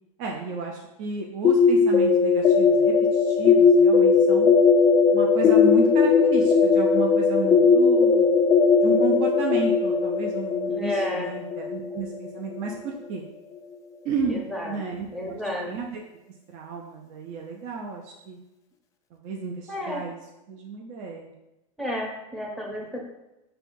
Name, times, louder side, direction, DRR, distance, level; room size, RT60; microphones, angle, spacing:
voice 1, 0.2-4.5 5.1-8.3 8.8-13.2 14.0-15.4 15.7-16.0 16.5-18.4 19.1-20.2 20.5-21.3 22.8-22.9, right 4 dB, 45° right, -1 dB, 0.6 m, -32 dB
sound 1, 1.4-13.2, left 5 dB, 20° left, 0.3 m, -19 dB
voice 2, 10.7-11.3 14.3-14.8 15.1-15.7 19.7-20.0 21.8-23.0, left 1 dB, ahead, -1 dB, 0.7 m, -31 dB
5.4 x 2.2 x 2.6 m, 0.94 s
supercardioid pair, 130°, 18 cm